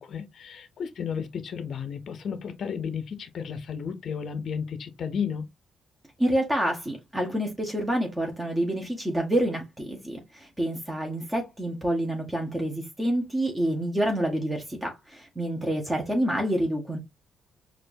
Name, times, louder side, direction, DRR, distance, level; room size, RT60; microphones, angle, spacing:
voice 1, 0.0-5.5, left 7 dB, 55° left, 0.6 m, -33 dB
voice 2, 6.2-17.0, right 1 dB, 15° right, 0.9 m, -28 dB
4.3 x 2.4 x 2.6 m
cardioid pair, 90°, 0 cm